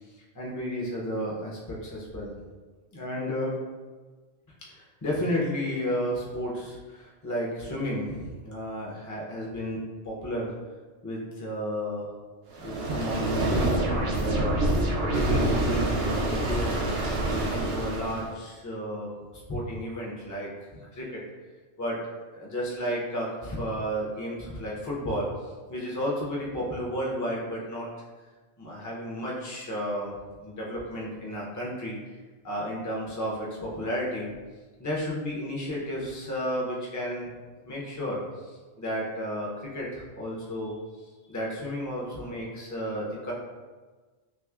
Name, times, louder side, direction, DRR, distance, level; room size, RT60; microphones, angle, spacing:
voice 1, 0.3-2.3 2.9-3.5 4.6-9.8 10.0-10.5 11.0-12.1 12.6-14.6 15.0-16.7 17.2-21.2 21.8-22.0 22.3-25.3 25.7-27.9 28.6-30.1 30.4-32.0 32.4-34.3 34.8-37.3 37.6-38.2 38.8-40.7 41.3-43.3, equal, 20° left, -4 dB, 0.6 m, -32 dB
sound 1, 12.5-18.3, right 1 dB, 65° right, 0.9 m, -26 dB
5.8 x 2.1 x 2.4 m, 1.3 s
omnidirectional pair, 1.2 m